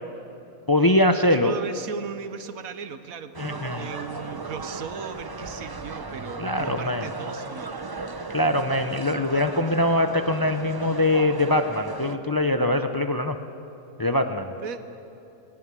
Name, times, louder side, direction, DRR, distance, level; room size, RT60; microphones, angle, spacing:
voice 1, 0.7-1.5 3.4-3.8 6.4-7.1 8.3-13.4 14.0-14.5, left 1 dB, 35° left, 7 dB, 0.3 m, -23 dB
voice 2, 1.3-7.8 8.4-8.7 14.6-14.8, right 6 dB, 80° right, 10 dB, 1.4 m, -36 dB
sound 1, 3.3-12.2, right 3 dB, 25° right, 0.5 m, -36 dB
20.0 x 18.0 x 7.6 m, 2.8 s
omnidirectional pair, 1.5 m